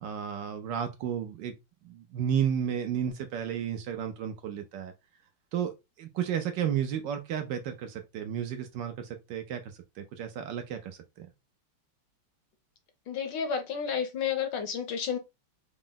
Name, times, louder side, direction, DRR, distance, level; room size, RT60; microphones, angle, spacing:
voice 1, 0.0-1.5 1.8-4.9 5.5-5.7 6.0-10.9 11.2-11.3, right 8 dB, 75° right, 1.1 m, -32 dB
voice 2, 13.1-15.2, left 7 dB, 70° left, 1.2 m, -31 dB
4.7 x 2.0 x 3.8 m
omnidirectional pair, 2.3 m